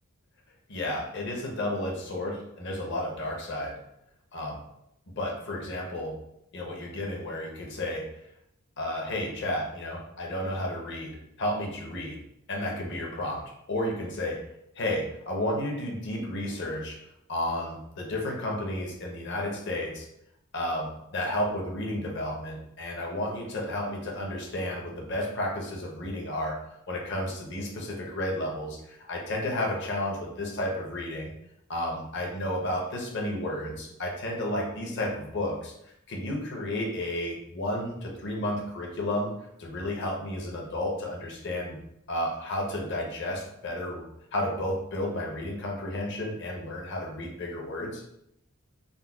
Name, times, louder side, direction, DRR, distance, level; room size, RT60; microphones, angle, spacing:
voice 1, 0.7-3.8 4.3-4.6 5.2-6.2 6.5-8.1 8.8-12.2 12.5-14.4 14.8-17.0 17.3-20.1 20.5-26.6 26.9-31.3 31.7-35.7 36.1-39.3 39.6-41.8 42.1-48.0, left 1 dB, 55° left, -1 dB, 0.6 m, -32 dB
3.8 x 2.1 x 2.2 m, 0.78 s
head